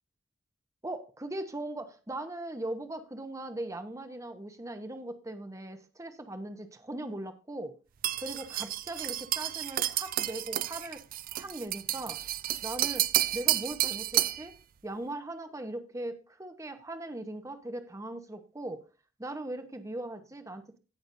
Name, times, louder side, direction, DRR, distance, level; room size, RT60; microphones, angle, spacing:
voice 1, 0.8-7.8 8.2-11.0 11.3-12.2 12.6-13.1 13.3-14.5 14.8-18.8 19.2-20.8, right 1 dB, 15° right, 8 dB, 0.9 m, -39 dB
sound 1, 8.0-14.5, right 14 dB, 40° right, 0.3 m, -31 dB
17.0 x 6.0 x 2.6 m, 0.33 s
head